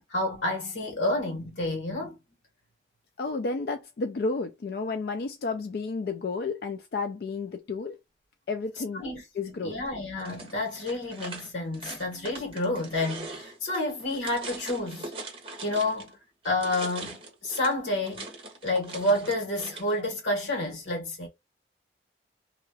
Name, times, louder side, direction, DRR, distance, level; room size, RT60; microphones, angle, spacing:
voice 1, 0.1-2.2 9.0-9.2 9.6-15.1 15.6-16.1 16.4-18.3 18.6-21.3, left 1 dB, 90° left, 1.6 m, -29 dB
voice 2, 3.2-8.0 8.5-9.0 9.4-9.7 12.1-12.3, left 3 dB, 55° left, 0.4 m, -32 dB
sound 1, 10.2-16.1 16.4-20.0, right 3 dB, 30° right, 0.8 m, -42 dB
2.8 x 2.4 x 2.6 m
head